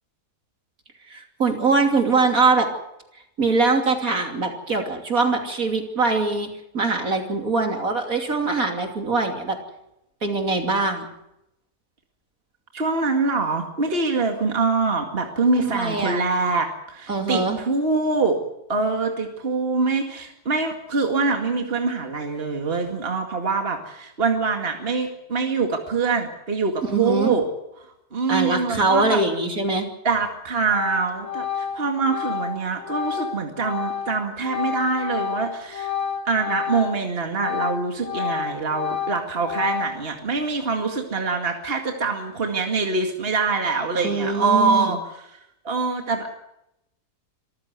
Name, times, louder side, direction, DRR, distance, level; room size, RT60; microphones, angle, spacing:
voice 1, 1.1-2.7 3.4-6.5 6.7-9.6 10.2-11.1 15.5-16.3 17.1-17.6 26.8-27.4 28.3-29.9 44.0-44.9, right 3 dB, 60° right, 4 dB, 3.3 m, -22 dB
voice 2, 12.7-18.4 18.7-27.4 28.1-29.2 30.0-35.9 36.3-45.2 45.6-46.3, right 4 dB, 35° right, 3 dB, 2.3 m, -24 dB
Organ, 30.1-30.4 30.7-37.0 37.3-40.2, left 8 dB, 60° left, 2.9 m, -30 dB
25.5 x 14.5 x 8.1 m, 0.83 s
omnidirectional pair, 1.7 m